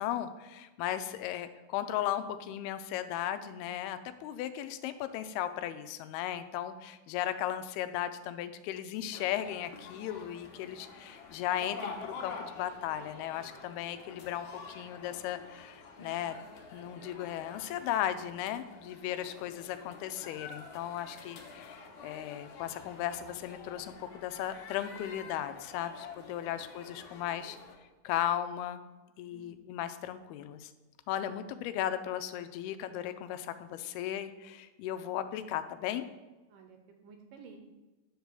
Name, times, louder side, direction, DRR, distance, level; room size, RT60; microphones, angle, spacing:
voice 1, 0.0-16.4 16.7-27.6 28.0-28.8 29.2-30.7 31.1-36.1, left 11 dB, 90° left, 11 dB, 2.6 m, -36 dB
sound 1, 9.1-27.8, left 5 dB, 65° left, 1.9 m, -48 dB
voice 2, 16.0-16.4 20.9-21.1 26.5-26.6 29.3-29.7 36.5-37.6, right 5 dB, 70° right, 4 dB, 2.3 m, -55 dB
10.0 x 4.8 x 6.7 m, 1.2 s
omnidirectional pair, 4.5 m